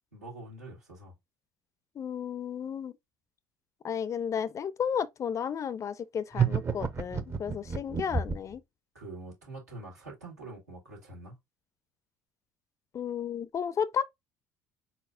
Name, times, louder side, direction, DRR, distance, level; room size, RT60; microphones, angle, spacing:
voice 1, 0.1-1.1 8.9-11.4, right 2 dB, 85° right, 1.9 m, -45 dB
voice 2, 2.0-2.9 3.8-8.6 12.9-14.0, left 7 dB, 35° left, 0.5 m, -33 dB
sound 1, 6.3-8.6, right 6 dB, 30° right, 0.7 m, -29 dB
4.2 x 4.0 x 2.5 m
figure-of-eight pair, 60°, 9 cm